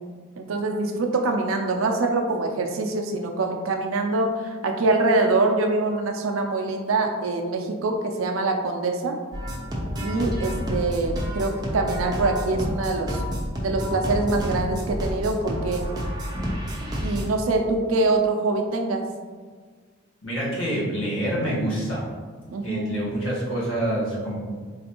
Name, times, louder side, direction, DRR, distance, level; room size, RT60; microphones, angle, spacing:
voice 1, 0.4-9.2 10.0-13.2 13.6-15.8 17.0-19.1 22.5-23.0, right 2 dB, 90° right, 3 dB, 0.4 m, -24 dB
sound 1, 9.3-17.2, equal, 20° right, 0.5 m, -29 dB
voice 2, 20.2-22.1 22.6-24.3, right 1 dB, 85° left, -6 dB, 1.3 m, -26 dB
4.0 x 2.6 x 2.9 m, 1.5 s
head